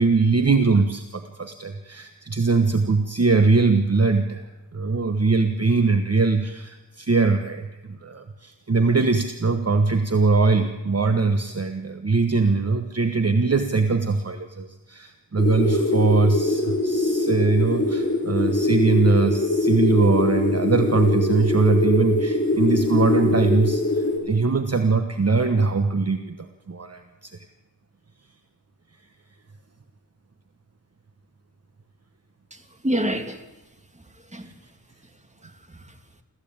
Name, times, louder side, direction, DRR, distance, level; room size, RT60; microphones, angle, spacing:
voice 1, 0.0-27.4 34.4-34.5, right 4 dB, 40° right, 7 dB, 1.3 m, -21 dB
sound 1, 15.4-24.2, left 2 dB, 25° left, 5.3 m, -23 dB
voice 2, 32.5-33.4 33.9-34.5 35.4-36.0, equal, 15° right, 6 dB, 2.5 m, -29 dB
26.0 x 14.5 x 8.8 m, 1.0 s
wide cardioid pair, 100°, 40 cm